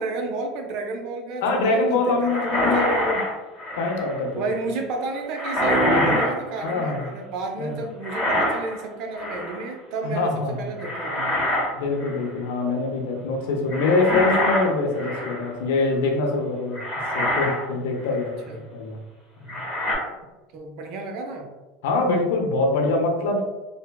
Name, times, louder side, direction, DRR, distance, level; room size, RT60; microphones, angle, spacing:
voice 1, 0.0-2.9 4.4-11.4 18.1-18.2 18.5-18.7 20.5-21.5, right 3 dB, 60° right, 2 dB, 0.5 m, -31 dB
voice 2, 1.4-3.2 3.8-4.4 5.8-6.3 6.6-7.1 7.6-7.8 10.0-10.8 11.7-16.8 17.1-19.0 19.4-19.6 21.8-23.4, left 3 dB, 85° left, 2 dB, 0.5 m, -24 dB
sound 1, 2.2-4.2 5.3-7.1 8.0-8.8 9.1-9.6 10.8-11.7 12.0-12.3 13.7-15.5 16.2-16.3 16.7-17.6 18.1-18.2 19.5-19.9, equal, 5° left, 1.1 m, -25 dB
3.2 x 2.1 x 2.2 m, 1.2 s
supercardioid pair, 135°, 0 cm